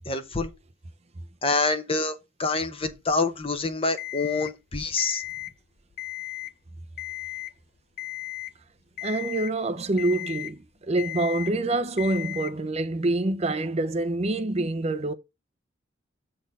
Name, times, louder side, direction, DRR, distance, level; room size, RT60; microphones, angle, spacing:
voice 1, 0.1-0.5 1.4-2.1 2.4-5.2, left 3 dB, 30° left, 0.9 m, -26 dB
Alarm, 4.0-4.5 5.0-5.5 5.9-6.5 7.0-7.5 8.0-8.5 9.0-9.5 10.0-10.5 11.0-11.5 12.0-12.5, left 17 dB, 55° left, 0.4 m, -35 dB
voice 2, 9.0-15.1, right 2 dB, 35° right, 0.6 m, -26 dB
7.7 x 4.0 x 5.4 m
head